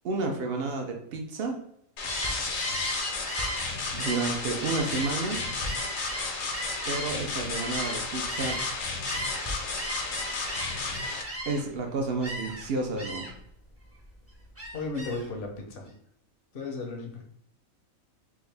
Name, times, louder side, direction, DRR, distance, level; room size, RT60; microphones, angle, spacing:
voice 1, 0.0-1.6 3.9-5.4 6.8-8.6 11.5-13.3, right 3 dB, 55° right, 2 dB, 0.7 m, -31 dB
sound 1, 2.0-11.2, left 4 dB, 70° left, 1.1 m, -33 dB
Gull seagull, 2.0-8.8 9.0-11.8 12.2-12.7 13.0-13.4 13.8-15.3, right 1 dB, 15° right, 0.5 m, -36 dB
voice 2, 14.7-15.9 16.5-17.2, left 3 dB, 50° left, 1 dB, 0.8 m, -35 dB
3.5 x 2.6 x 3.3 m, 0.70 s
omnidirectional pair, 1.5 m